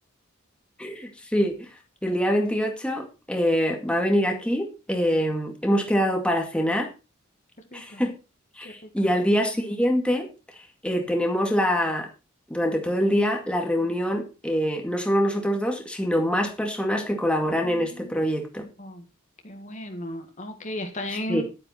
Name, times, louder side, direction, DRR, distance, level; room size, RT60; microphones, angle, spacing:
voice 1, 0.8-1.7 2.0-6.9 7.7-8.1 8.6-10.3 10.8-12.1 12.5-18.7 21.1-21.4, equal, 5° left, 3 dB, 2.1 m, -24 dB
voice 2, 7.7-8.0 8.6-8.7 17.6-18.1 18.8-19.0 19.4-21.4, left 1 dB, 35° left, 5 dB, 1.7 m, -35 dB
11.5 x 9.5 x 4.4 m, 0.30 s
head